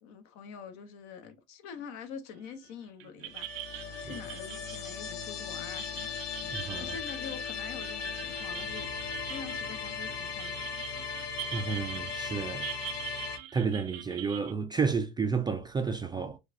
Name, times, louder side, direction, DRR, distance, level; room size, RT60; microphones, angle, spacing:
voice 1, 0.0-6.2 6.8-8.9 9.3-10.7, left 6 dB, 60° left, 0.9 m, -45 dB
sound 1, 2.4-2.7 3.0-14.5, right 15 dB, 70° right, 0.6 m, -44 dB
sound 2, 3.3-13.4, left 6 dB, 80° left, 1.2 m, -37 dB
voice 2, 6.4-7.0 11.5-12.7 13.5-16.4, right 5 dB, 15° right, 0.3 m, -31 dB
4.6 x 2.3 x 2.6 m
supercardioid pair, 100°, 32 cm